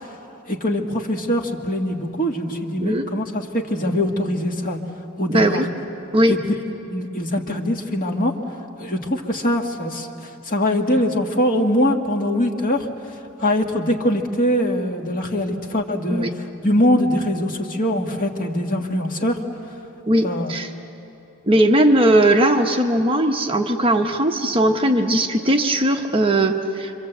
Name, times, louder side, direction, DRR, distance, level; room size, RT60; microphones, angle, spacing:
voice 1, 0.5-4.8 5.2-5.6 6.3-6.4 6.9-8.4 8.8-12.9 13.4-19.4 20.2-20.5, left 1 dB, 40° left, 2 dB, 1.9 m, -22 dB
voice 2, 5.3-5.6 6.1-6.4 16.1-16.3 20.1-20.7 21.5-27.0, right 1 dB, 25° right, 3 dB, 1.1 m, -18 dB
26.0 x 26.0 x 8.0 m, 2.9 s
head